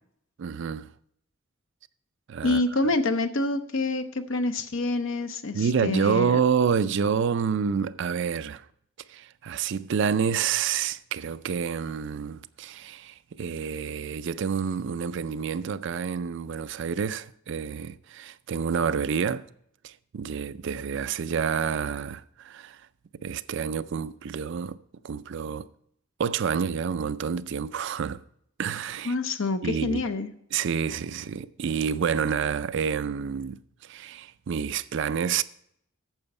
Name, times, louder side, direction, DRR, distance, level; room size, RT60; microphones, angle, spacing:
voice 1, 0.4-0.9 2.3-2.6 5.5-8.7 9.1-19.4 19.8-22.8 23.2-24.8 25.0-25.7 26.2-28.2 28.6-29.1 29.6-30.0 30.5-35.4, right 6 dB, 55° right, 0.4 m, -28 dB
voice 2, 2.4-6.3 29.0-30.3, left 2 dB, 60° left, 0.7 m, -27 dB
9.0 x 7.0 x 5.4 m
head